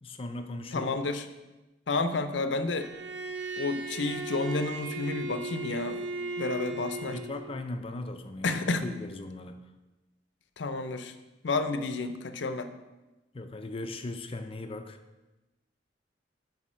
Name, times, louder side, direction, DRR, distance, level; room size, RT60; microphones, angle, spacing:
voice 1, 0.0-0.9 7.1-9.6 13.3-15.0, left 2 dB, 30° left, 8 dB, 0.5 m, -38 dB
voice 2, 0.7-1.2 1.9-2.9 3.6-6.1 6.4-7.2 8.4-8.9 10.6-11.1 11.4-12.7, left 3 dB, 75° left, 9 dB, 0.6 m, -30 dB
Bowed string instrument, 2.8-7.6, right 3 dB, 85° right, 0.9 m, -37 dB
8.5 x 4.1 x 6.2 m, 1.1 s
head